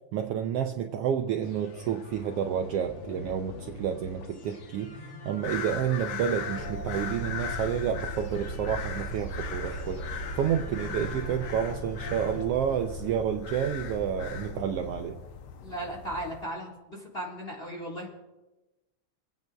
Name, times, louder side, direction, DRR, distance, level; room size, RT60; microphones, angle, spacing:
voice 1, 0.1-15.2, right 8 dB, 90° right, 5 dB, 1.3 m, -30 dB
sound 1, 1.4-12.4, left 2 dB, 60° left, 1.6 m, -44 dB
sound 2, 5.4-16.5, left 8 dB, 80° left, 2.1 m, -40 dB
sound 3, 6.6-15.1, right 1 dB, 45° left, 4.2 m, -39 dB
voice 2, 15.6-18.1, right 1 dB, 25° left, -3 dB, 1.6 m, -36 dB
27.0 x 9.2 x 2.3 m, 1.1 s
omnidirectional pair, 3.4 m